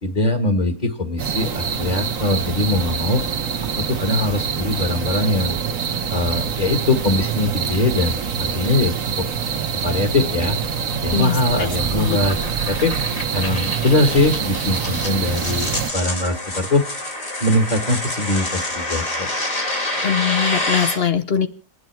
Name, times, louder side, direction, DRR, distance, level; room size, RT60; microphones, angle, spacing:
voice 1, 0.0-3.2 3.7-5.6 6.1-9.3 9.7-10.5 10.9-12.4 12.7-12.9 13.3-16.8 17.4-19.3, left 2 dB, 30° left, 6 dB, 1.6 m, -21 dB
sound 1, 1.2-15.9, right 7 dB, 65° right, 1.5 m, -25 dB
sound 2, 10.2-21.0, left 1 dB, 60° left, 3.7 m, -28 dB
voice 2, 11.1-12.2 20.0-21.5, left 8 dB, 45° left, 10 dB, 1.1 m, -22 dB
28.0 x 9.6 x 4.5 m, 0.38 s
omnidirectional pair, 1.6 m